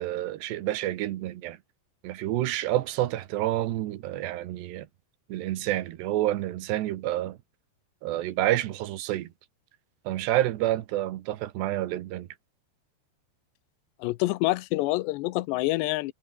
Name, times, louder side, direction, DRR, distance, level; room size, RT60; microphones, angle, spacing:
voice 1, 0.0-1.6 2.0-4.9 5.3-7.4 8.0-9.3 10.1-12.3, right 14 dB, 80° right, 3.4 m, -28 dB
voice 2, 14.0-16.1, left 19 dB, 90° left, 3.0 m, -27 dB
omnidirectional pair, 4.9 m